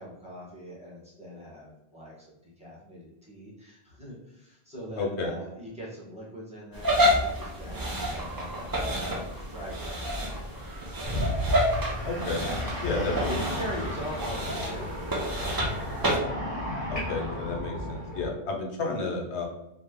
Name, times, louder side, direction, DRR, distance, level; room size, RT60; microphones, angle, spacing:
voice 1, 0.0-10.8 11.8-12.1 12.7-16.0, equal, 5° right, -6 dB, 0.9 m, -42 dB
voice 2, 5.0-5.3 12.0-12.4 12.8-13.6 16.9-19.5, left 3 dB, 85° left, 1 dB, 1.0 m, -31 dB
sound 1, 6.7-16.2, equal, 35° right, 0.3 m, -29 dB
sound 2, 11.1-18.3, left 1 dB, 35° left, 0.9 m, -33 dB
2.8 x 2.1 x 3.5 m, 0.90 s
omnidirectional pair, 1.1 m